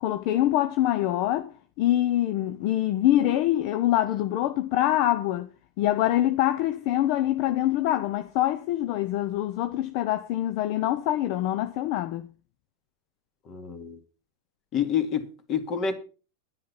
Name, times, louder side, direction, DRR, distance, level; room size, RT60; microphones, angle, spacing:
voice 1, 0.0-5.5 5.8-12.3, left 13 dB, 55° left, 0.8 m, -25 dB
voice 2, 13.5-14.0 14.7-15.9, left 7 dB, 35° left, 2.3 m, -28 dB
10.5 x 10.0 x 5.6 m
hypercardioid pair, 95°, 0 cm